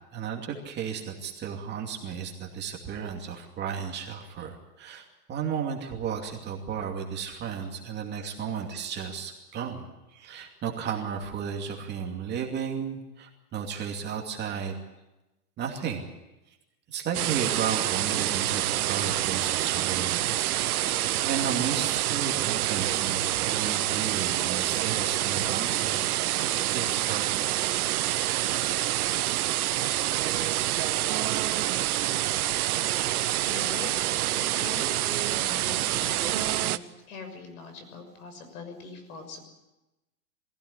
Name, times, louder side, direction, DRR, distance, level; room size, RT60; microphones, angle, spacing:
voice 1, 0.1-9.8 10.1-14.8 15.6-16.0 16.9-20.5 20.8-26.0 26.5-27.3, right 7 dB, 20° right, 1 dB, 2.6 m, -34 dB
sound 1, 17.1-36.8, right 13 dB, 65° right, 1.0 m, -27 dB
voice 2, 33.4-39.5, left 4 dB, 60° left, 8 dB, 6.7 m, -43 dB
23.0 x 16.0 x 9.8 m, 1.0 s
hypercardioid pair, 145°, 48 cm